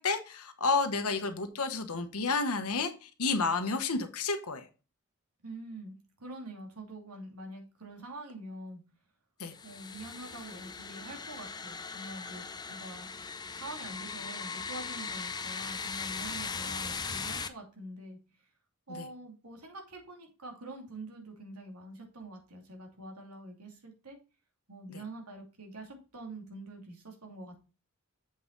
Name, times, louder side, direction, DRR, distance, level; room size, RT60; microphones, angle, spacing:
voice 1, 0.0-4.7 9.4-9.5 18.9-19.1 24.9-25.0, left 4 dB, 75° left, 1.2 m, -31 dB
voice 2, 5.4-8.8 9.6-13.1 13.5-18.2 18.9-24.2 24.7-27.6, right 2 dB, 90° right, 2.7 m, -45 dB
sound 1, 9.5-17.5, left 5 dB, 20° left, 0.5 m, -39 dB
7.7 x 5.6 x 4.0 m
head